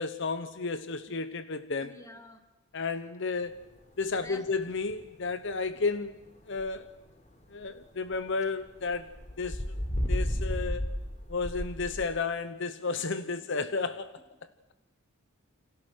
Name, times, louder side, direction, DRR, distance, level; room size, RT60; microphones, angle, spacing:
voice 1, 0.0-2.0 2.7-3.6 4.0-6.2 6.5-6.9 7.5-9.6 10.1-10.9 11.3-14.2, left 4 dB, 60° left, 0.9 m, -32 dB
voice 2, 1.8-2.4 4.1-4.5 14.4-14.5, left 2 dB, 15° left, 2.0 m, -47 dB
sound 1, 4.1-7.1 7.4-8.2 8.6-12.1, equal, 35° left, 4.0 m, -33 dB
29.0 x 26.5 x 6.4 m
head